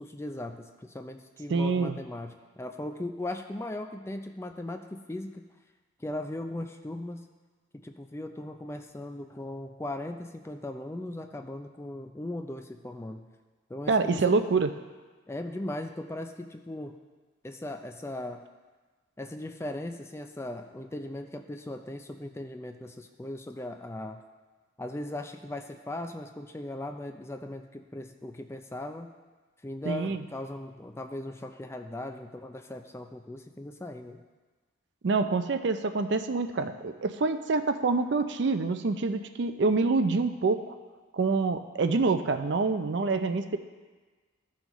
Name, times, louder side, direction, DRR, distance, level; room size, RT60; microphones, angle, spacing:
voice 1, 0.0-5.4 6.0-7.3 7.7-13.3 13.7-14.4 15.3-17.0 17.4-18.4 19.2-24.2 24.8-29.1 29.6-34.2, left 1 dB, 15° left, 5 dB, 0.4 m, -38 dB
voice 2, 1.5-2.0 13.9-14.7 29.9-30.2 35.0-40.8 41.1-43.6, right 4 dB, 60° right, 9 dB, 0.4 m, -26 dB
14.0 x 5.7 x 3.0 m, 1.3 s
head